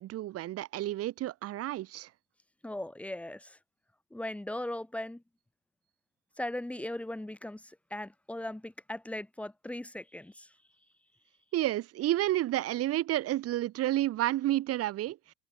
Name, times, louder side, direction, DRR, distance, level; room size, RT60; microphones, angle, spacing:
voice 1, 0.0-2.1 11.5-15.3, right 14 dB, 40° right, 2.5 m, -30 dB
voice 2, 2.6-3.6 4.1-5.2 6.4-10.5, left 1 dB, 5° left, 3.0 m, -38 dB
cardioid pair, 170°, 38 cm